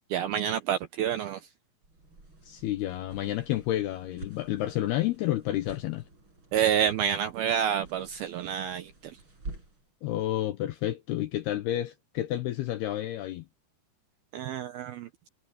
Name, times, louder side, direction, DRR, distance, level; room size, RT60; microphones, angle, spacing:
voice 1, 0.1-1.4 6.5-9.2 14.3-15.1, right 9 dB, 75° right, 2.3 m, -28 dB
sound 1, 1.8-9.9, right 2 dB, 25° right, 7.4 m, -49 dB
voice 2, 2.4-6.0 10.0-13.5, left 14 dB, 80° left, 2.4 m, -30 dB
omnidirectional pair, 5.5 m